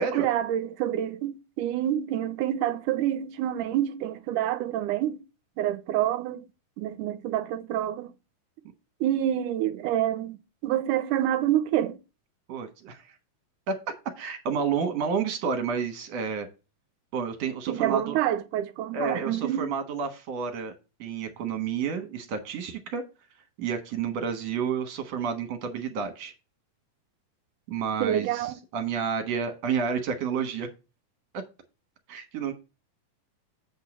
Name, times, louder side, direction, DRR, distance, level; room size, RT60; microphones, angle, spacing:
voice 1, 0.0-5.2 5.6-6.5 6.8-8.1 9.0-10.4 10.6-12.0 17.7-19.7 28.0-28.6, right 11 dB, 80° right, 2.1 m, -27 dB
voice 2, 12.5-13.0 13.7-13.8 14.2-16.5 17.1-18.2 18.9-20.7 21.0-23.0 23.6-26.3 27.7-30.7 32.1-32.5, right 6 dB, 60° right, 2.2 m, -30 dB
8.4 x 3.7 x 6.0 m
omnidirectional pair, 3.8 m